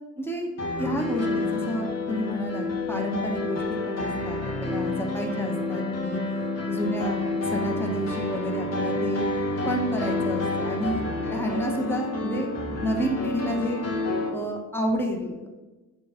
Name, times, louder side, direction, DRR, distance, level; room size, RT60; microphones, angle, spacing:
voice 1, 0.2-0.5 0.8-6.2 6.7-9.3 9.6-11.0 11.3-12.5 12.8-13.8 14.3-15.5, equal, 5° left, 1 dB, 1.3 m, -30 dB
sound 1, 0.6-14.3, left 2 dB, 60° left, 1.9 m, -29 dB
9.0 x 3.6 x 5.8 m, 1.2 s
cardioid pair, 90°, 30 cm